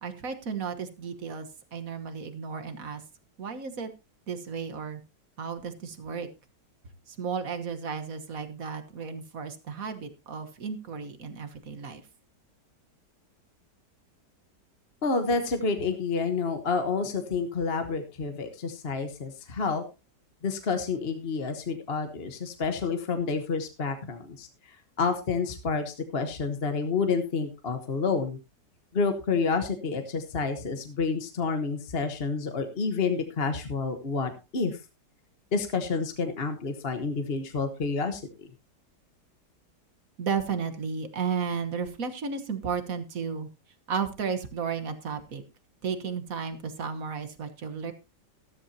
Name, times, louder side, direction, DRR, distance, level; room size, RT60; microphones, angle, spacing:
voice 1, 0.0-3.0 3.4-3.9 4.3-5.0 5.4-6.3 7.1-12.0 40.2-43.5 43.9-45.4 45.8-47.9, right 6 dB, 55° right, 8 dB, 1.7 m, -33 dB
voice 2, 15.0-19.8 20.4-28.4 28.9-34.8 35.5-38.5, left 4 dB, 40° left, 7 dB, 1.3 m, -29 dB
13.5 x 13.5 x 2.8 m, 0.26 s
omnidirectional pair, 1.9 m